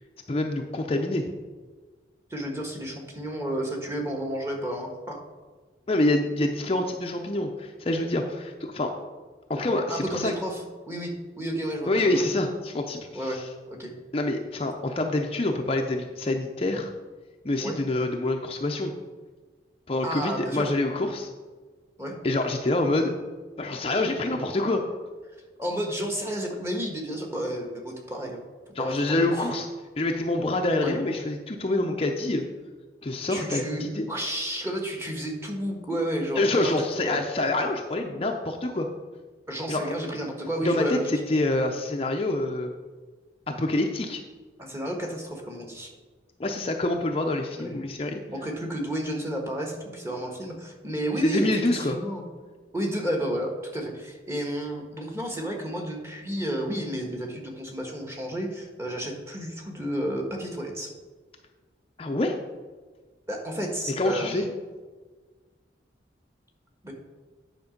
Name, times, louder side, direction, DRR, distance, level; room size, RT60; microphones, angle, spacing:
voice 1, 0.3-1.3 5.9-8.9 9.5-10.3 11.9-13.5 14.1-16.9 17.4-18.9 19.9-21.3 22.2-23.1 23.6-24.8 28.8-29.7 30.0-32.4 33.0-34.1 36.4-38.9 39.7-39.8 40.6-42.7 43.5-44.2 46.4-48.2 51.2-52.0 62.0-62.4 64.0-64.4, left 2 dB, 30° left, 3 dB, 0.6 m, -26 dB
voice 2, 2.3-5.2 9.9-12.3 13.1-13.4 13.8-13.9 17.6-17.8 20.0-20.7 22.0-22.1 25.6-28.4 28.8-29.3 30.8-31.0 33.3-36.7 37.0-37.2 39.5-41.1 44.6-45.9 47.5-47.8 48.3-52.2 52.7-60.9 63.3-64.5 66.8-66.9, right 1 dB, 15° right, 1 dB, 1.4 m, -31 dB
9.6 x 5.8 x 5.2 m, 1.4 s
head